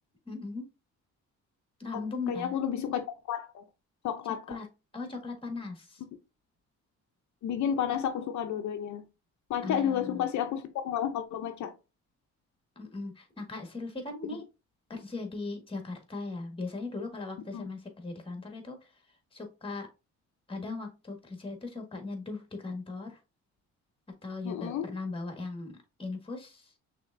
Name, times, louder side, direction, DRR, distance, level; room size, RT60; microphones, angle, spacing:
voice 1, 0.3-0.7 1.8-2.5 4.5-4.7 4.9-6.0 9.6-10.3 12.7-14.4 14.9-18.8 19.3-19.9 20.5-23.2 24.2-25.7 26.0-26.6, left 3 dB, 20° left, 1.6 m, -38 dB
voice 2, 2.3-3.6 4.0-4.6 7.4-9.0 9.5-11.7 14.3-14.4 17.5-17.7 24.4-24.8, left 9 dB, 70° left, 0.6 m, -31 dB
5.8 x 3.4 x 2.6 m
cardioid pair, 90°, 30 cm